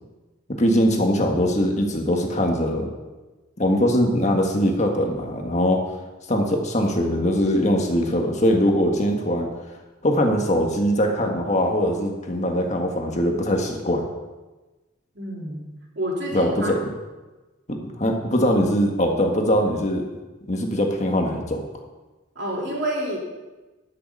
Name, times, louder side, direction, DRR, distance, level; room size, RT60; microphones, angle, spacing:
voice 1, 0.5-2.9 3.6-5.8 6.3-9.5 10.0-14.1 16.3-16.8 17.7-20.0 20.5-21.6, equal, 35° left, 2 dB, 1.6 m, -21 dB
voice 2, 15.1-15.7 15.9-16.7 22.3-23.2, right 1 dB, 60° right, -2 dB, 3.4 m, -28 dB
11.5 x 6.8 x 8.5 m, 1.2 s
head